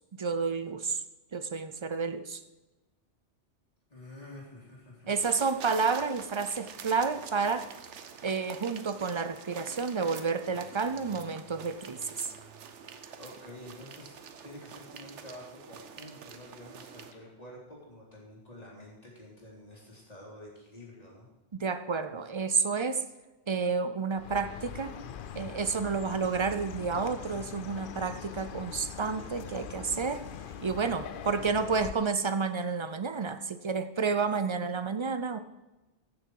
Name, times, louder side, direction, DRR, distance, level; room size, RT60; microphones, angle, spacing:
voice 1, 0.2-1.0 1.3-2.4 5.1-7.7 8.2-12.3 21.5-23.0 23.5-25.0 25.3-30.2 30.6-35.4, right 5 dB, 40° right, 10 dB, 0.4 m, -30 dB
voice 2, 3.9-5.1 13.1-21.3, left 1 dB, 35° left, -4 dB, 3.3 m, -49 dB
sound 1, 5.1-17.1, right 6 dB, 90° right, 1.1 m, -47 dB
Chirp tweet, 24.1-31.9, left 8 dB, 55° left, 0.7 m, -42 dB
15.0 x 6.7 x 4.7 m, 1.1 s
omnidirectional pair, 1.2 m